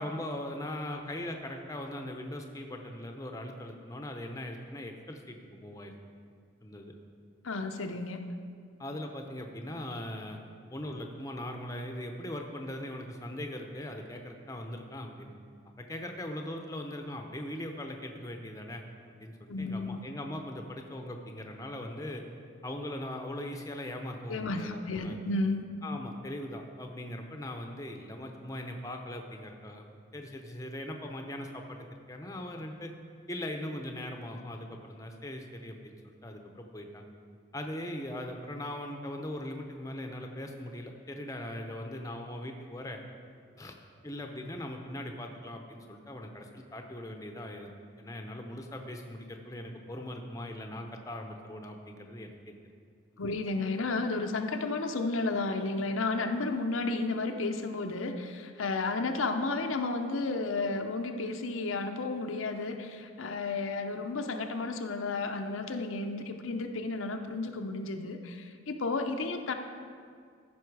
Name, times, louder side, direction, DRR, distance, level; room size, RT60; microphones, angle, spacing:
voice 1, 0.0-5.9 6.6-6.9 8.8-10.4 10.7-15.3 15.8-18.8 19.2-22.2 22.6-25.2 25.8-29.9 30.1-32.9 33.3-37.1 37.5-43.0 43.6-43.8 44.0-47.7 48.0-52.3, left 1 dB, 15° left, 3 dB, 0.6 m, -40 dB
voice 2, 7.4-8.2 19.5-20.0 24.3-25.7 53.2-69.5, left 3 dB, 85° left, 5 dB, 0.7 m, -32 dB
14.5 x 5.5 x 4.7 m, 2.2 s
head